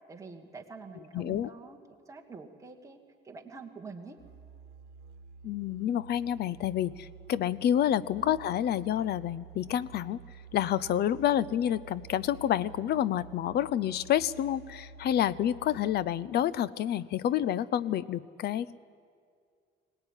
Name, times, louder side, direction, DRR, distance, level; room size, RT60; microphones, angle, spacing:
voice 1, 0.1-1.8 2.1-3.0 3.2-4.2 8.2-8.4, right 4 dB, 15° right, 2 dB, 1.7 m, -46 dB
voice 2, 1.1-1.5 5.4-10.2 10.5-18.8, left 11 dB, 55° left, 20 dB, 0.6 m, -29 dB
Musical instrument, 4.2-16.2, right 6 dB, 55° right, 1.6 m, -50 dB
22.0 x 18.5 x 9.8 m, 2.2 s
cardioid pair, 160°, 20 cm